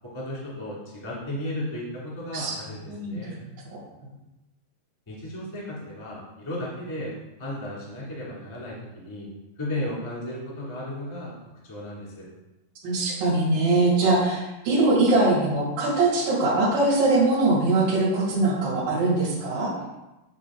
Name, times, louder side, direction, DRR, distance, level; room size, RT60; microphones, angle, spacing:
voice 1, 0.1-3.4 5.1-7.1 7.4-9.3 9.6-11.3 11.6-12.3, left 1 dB, 15° left, -6 dB, 1.0 m, -34 dB
voice 2, 2.9-3.4 12.8-19.7, right 2 dB, 60° right, -8 dB, 3.3 m, -22 dB
9.7 x 4.0 x 3.7 m, 1.0 s
omnidirectional pair, 4.9 m